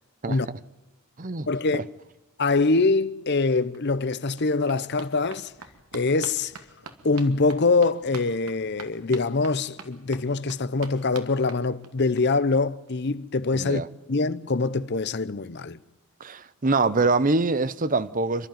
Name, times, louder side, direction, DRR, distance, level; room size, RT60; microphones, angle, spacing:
voice 1, 0.2-0.6 1.2-1.5 1.7-1.8 13.5-13.9 16.2-18.5, right 3 dB, 35° right, 0.8 m, -24 dB
voice 2, 1.5-1.9 2.4-5.5 5.9-6.5 7.0-13.8 14.1-15.8, left 3 dB, 50° left, 0.8 m, -24 dB
sound 1, 3.4-3.5 3.7-12.2 12.5-12.6 12.9-13.0 13.2-13.3, right 4 dB, 80° right, 2.2 m, -46 dB
29.5 x 12.0 x 9.2 m
head